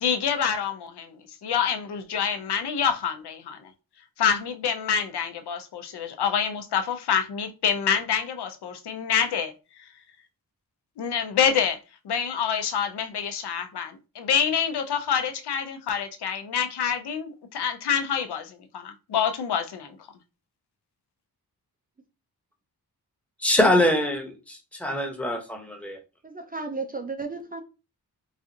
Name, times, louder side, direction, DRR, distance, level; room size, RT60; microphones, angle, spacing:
voice 1, 0.0-1.1 1.4-3.6 4.2-9.5 11.0-11.8 12.0-19.9, left 7 dB, 85° left, 0.6 m, -26 dB
voice 2, 23.4-26.0, left 1 dB, 5° left, 0.8 m, -24 dB
voice 3, 26.2-27.6, right 3 dB, 25° right, 0.4 m, -33 dB
4.0 x 2.5 x 2.5 m
wide cardioid pair, 110°, 39 cm